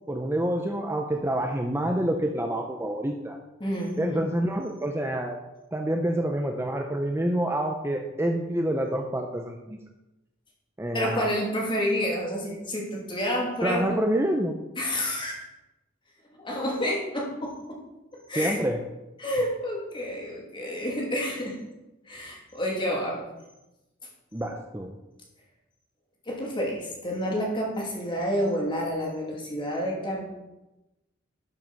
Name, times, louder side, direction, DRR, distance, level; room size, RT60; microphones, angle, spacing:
voice 1, 0.1-3.4 4.0-5.4 5.7-9.8 10.8-11.3 13.6-14.5 18.4-18.8 24.3-24.9, right 1 dB, 10° right, 3 dB, 0.7 m, -27 dB
voice 2, 3.6-4.3 10.9-13.8 14.8-15.4 16.3-17.8 18.3-18.6 19.2-21.6 22.1-23.2 26.3-30.2, equal, 25° left, -2 dB, 2.6 m, -29 dB
12.5 x 6.1 x 5.4 m, 1.0 s
head